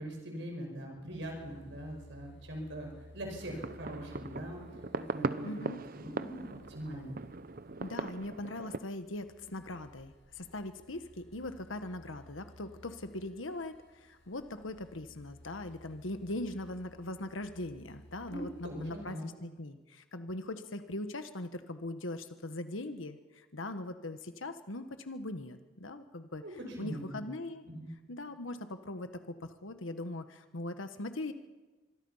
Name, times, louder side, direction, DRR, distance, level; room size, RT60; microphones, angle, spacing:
voice 1, 0.0-4.6 5.1-7.2 18.3-19.3 26.4-27.2 27.7-27.9, right 1 dB, 65° right, 2 dB, 5.7 m, -42 dB
sound 1, 1.1-19.2, equal, 60° left, 2.4 m, -57 dB
sound 2, 3.4-8.8, right 3 dB, 45° right, 0.7 m, -39 dB
voice 2, 5.4-5.9 7.8-26.4 26.8-27.7 28.1-31.3, left 1 dB, 85° left, 9 dB, 1.4 m, -40 dB
25.5 x 23.0 x 5.7 m, 1.2 s
head